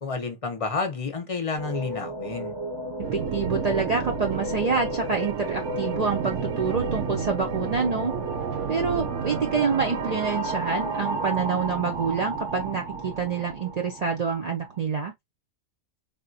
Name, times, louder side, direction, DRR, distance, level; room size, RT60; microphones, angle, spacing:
voice 1, 0.0-2.5, left 4 dB, 40° left, 0.5 m, -30 dB
sound 1, 1.6-14.8, right 1 dB, 30° right, 0.8 m, -34 dB
voice 2, 3.0-8.1 8.7-15.1, right 5 dB, 55° right, 0.4 m, -27 dB
sound 2, 3.0-14.4, right 7 dB, 75° right, 0.9 m, -33 dB
3.7 x 2.1 x 2.5 m
omnidirectional pair, 1.4 m